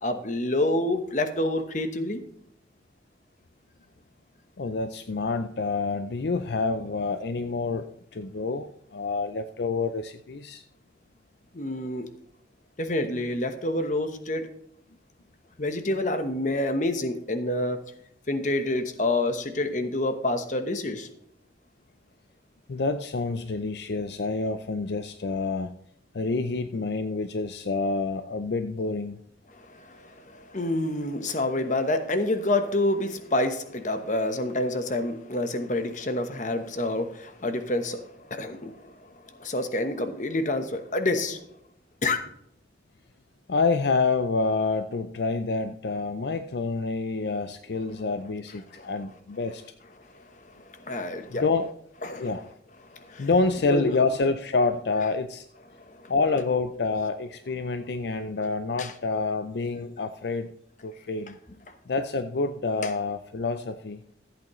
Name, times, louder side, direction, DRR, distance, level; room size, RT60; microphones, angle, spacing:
voice 1, 0.0-2.2 11.5-12.1 12.8-14.5 15.6-17.8 18.3-21.1 29.5-41.4 42.0-42.2 48.7-48.9 50.0-51.4 52.0-52.3 52.8-53.3 53.7-53.9 55.7-56.1 58.8-58.9 62.8-62.9, left 1 dB, 40° left, 8 dB, 1.1 m, -28 dB
voice 2, 4.6-10.6 22.7-25.7 26.1-29.2 43.5-49.6 51.3-51.7 52.2-52.5 53.2-55.5 56.1-60.5 60.8-61.4 61.9-64.0, left 3 dB, 65° left, 9 dB, 0.5 m, -27 dB
14.5 x 8.4 x 3.1 m, 0.72 s
head